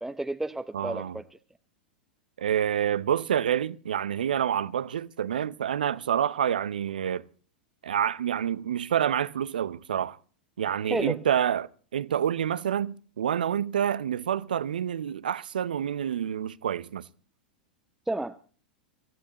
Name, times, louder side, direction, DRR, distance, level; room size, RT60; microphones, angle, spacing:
voice 1, 0.0-1.4 10.8-11.2 18.1-18.4, right 2 dB, 5° right, 0.8 m, -31 dB
voice 2, 0.7-1.2 2.4-7.2 7.8-10.2 10.6-17.1, right 9 dB, 70° right, 0.7 m, -28 dB
25.5 x 15.5 x 3.0 m
figure-of-eight pair, 95°, 5 cm